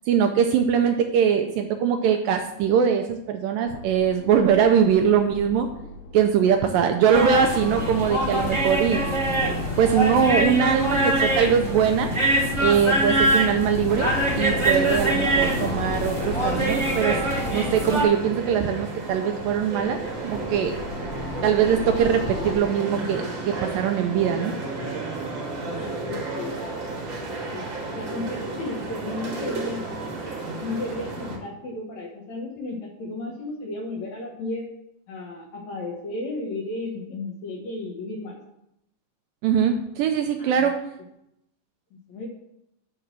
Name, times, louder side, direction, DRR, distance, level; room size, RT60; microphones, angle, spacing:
voice 1, 0.1-5.7 6.1-9.0 9.8-12.1 12.6-17.2 17.5-20.7 21.4-24.5 39.4-40.8, right 7 dB, 80° right, 5 dB, 2.1 m, -22 dB
sound 1, 3.7-18.7 19.0-22.6, left 3 dB, 80° left, 2.9 m, -38 dB
sound 2, 7.1-18.0, right 1 dB, 15° right, 1.3 m, -24 dB
sound 3, 13.9-31.4, right 3 dB, 50° right, 1.5 m, -33 dB
voice 2, 25.7-27.6 27.9-29.9 30.6-34.7 35.1-38.4 40.4-40.7 42.1-42.3, left 2 dB, 60° left, -1 dB, 2.1 m, -34 dB
11.0 x 3.8 x 6.1 m, 0.80 s
omnidirectional pair, 4.4 m